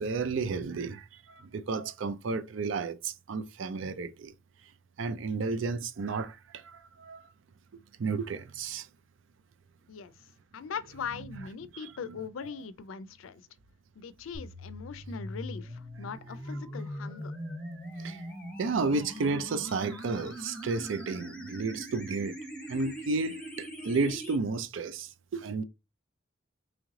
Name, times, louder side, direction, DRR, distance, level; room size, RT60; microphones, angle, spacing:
voice 1, 0.0-4.3 5.0-7.3 8.0-8.9 11.7-12.1 18.0-18.3 18.6-22.3 22.7-25.6, right 4 dB, 75° right, 0.4 m, -32 dB
voice 2, 10.5-13.4 14.0-17.3, left 6 dB, 90° left, 0.4 m, -40 dB
sound 1, 14.3-24.4, equal, 5° left, 0.9 m, -41 dB
3.1 x 3.1 x 3.6 m
head